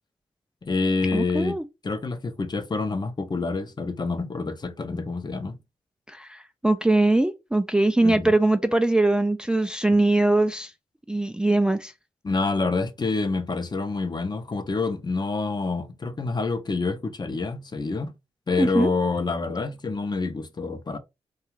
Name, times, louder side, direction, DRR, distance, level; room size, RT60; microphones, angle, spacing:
voice 1, 0.6-1.6 1.8-5.5 8.0-8.3 12.2-18.1 18.5-21.0, left 3 dB, 35° left, 0.6 m, -27 dB
voice 2, 1.1-1.6 6.1-10.7 11.1-11.9 18.6-18.9, right 2 dB, 5° right, 0.3 m, -22 dB
2.3 x 2.3 x 3.1 m
supercardioid pair, 45°, 12 cm